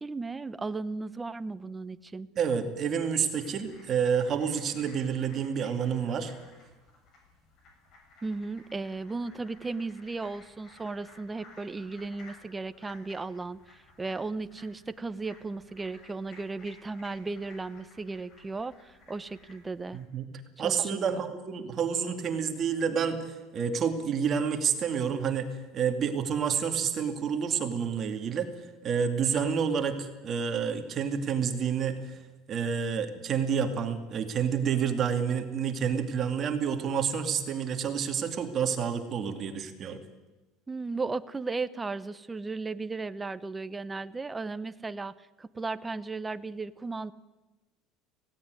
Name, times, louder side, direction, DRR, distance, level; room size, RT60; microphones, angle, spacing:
voice 1, 0.0-2.3 8.2-20.0 20.6-21.3 40.7-47.1, right 3 dB, 15° right, 13 dB, 0.7 m, -36 dB
voice 2, 2.4-6.3 19.9-20.3 20.6-28.5 28.8-32.2 32.5-40.0, right 7 dB, 35° right, 6 dB, 2.4 m, -29 dB
sound 1, 3.4-20.0, left 3 dB, 45° left, 7.3 m, -56 dB
17.0 x 17.0 x 9.6 m, 1.1 s
cardioid pair, 145°, 0 cm